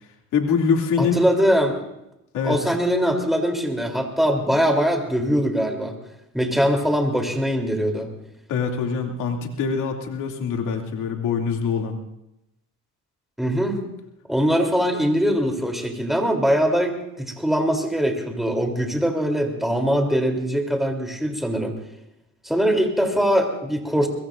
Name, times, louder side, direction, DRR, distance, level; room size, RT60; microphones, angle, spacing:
voice 1, 0.3-1.2 2.3-2.6 8.5-12.0, left 6 dB, 85° left, 2 dB, 2.8 m, -24 dB
voice 2, 1.0-1.8 2.4-5.9 6.3-8.1 13.4-13.8 14.3-21.7 22.4-24.1, equal, ahead, 3 dB, 3.4 m, -22 dB
22.5 x 22.0 x 2.6 m, 0.86 s
cardioid pair, 90°, 30 cm